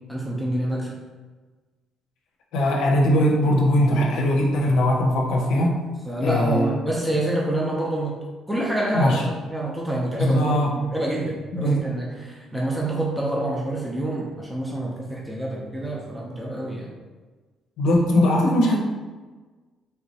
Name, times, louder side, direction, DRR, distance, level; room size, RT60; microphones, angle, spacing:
voice 1, 0.1-0.9 6.1-16.9, right 1 dB, 5° right, -4 dB, 0.6 m, -27 dB
voice 2, 2.5-5.8 6.2-6.7 8.9-9.2 10.2-10.8 11.5-11.8 17.8-18.8, left 1 dB, 80° left, -1 dB, 0.5 m, -20 dB
3.3 x 2.9 x 2.8 m, 1.3 s
cardioid pair, 95°, 0 cm